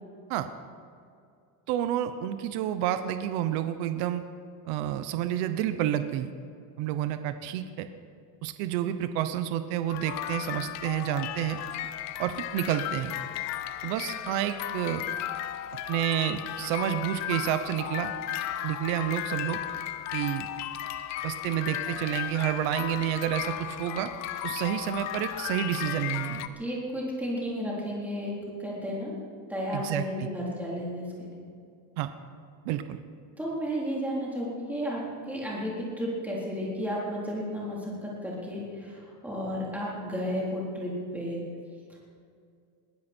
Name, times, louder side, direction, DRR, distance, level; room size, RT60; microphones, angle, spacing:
voice 1, 1.7-4.2 4.7-6.3 6.8-7.9 8.4-11.6 12.2-13.1 13.8-15.0 15.9-18.1 18.6-19.6 20.1-20.5 21.2-24.1 24.4-26.5 29.7-30.3 32.0-32.1 32.6-33.0, right 11 dB, 60° right, 10 dB, 1.0 m, -29 dB
sound 1, 9.9-26.5, left 12 dB, 35° left, 0.6 m, -35 dB
voice 2, 26.6-28.3 28.6-29.1 29.5-31.4 33.4-35.0 35.3-41.4, equal, 5° right, -5 dB, 3.8 m, -33 dB
21.5 x 15.0 x 4.5 m, 2.4 s
cardioid pair, 175°, 46 cm